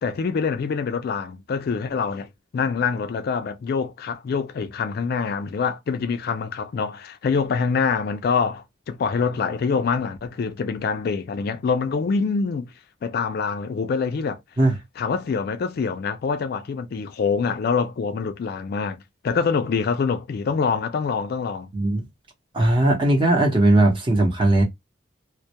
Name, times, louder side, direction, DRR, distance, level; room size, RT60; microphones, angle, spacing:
voice 1, 0.0-12.7 13.0-14.4 15.0-21.7, left 5 dB, 55° left, 0.3 m, -25 dB
voice 2, 21.7-22.0 22.5-24.6, right 1 dB, 25° right, 0.7 m, -18 dB
2.2 x 2.1 x 2.7 m
head